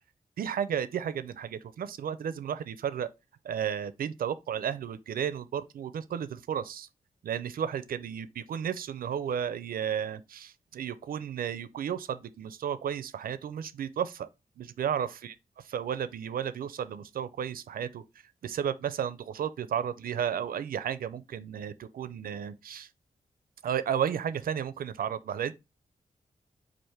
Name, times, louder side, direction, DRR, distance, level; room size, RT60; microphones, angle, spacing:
voice 1, 0.4-3.1 3.4-6.9 7.2-14.3 14.6-18.0 18.4-22.9 23.6-25.5, right 8 dB, 80° right, 0.4 m, -33 dB
4.8 x 2.5 x 4.4 m
wide cardioid pair, 110°, 15 cm